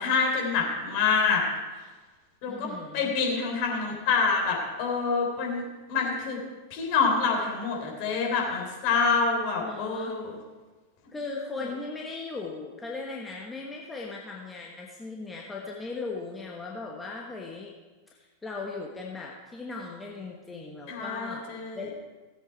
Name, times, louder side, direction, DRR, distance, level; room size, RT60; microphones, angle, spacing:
voice 1, 0.0-1.4 2.4-2.7 2.9-5.6 5.9-6.4 6.7-10.4 20.9-21.8, left 5 dB, 45° left, -1 dB, 3.5 m, -26 dB
voice 2, 2.5-3.1 9.6-10.2 11.1-17.7 18.2-21.4 21.7-21.9, left 3 dB, 10° left, -2 dB, 1.4 m, -38 dB
16.5 x 8.1 x 4.6 m, 1.3 s
figure-of-eight pair, 90°, 0 cm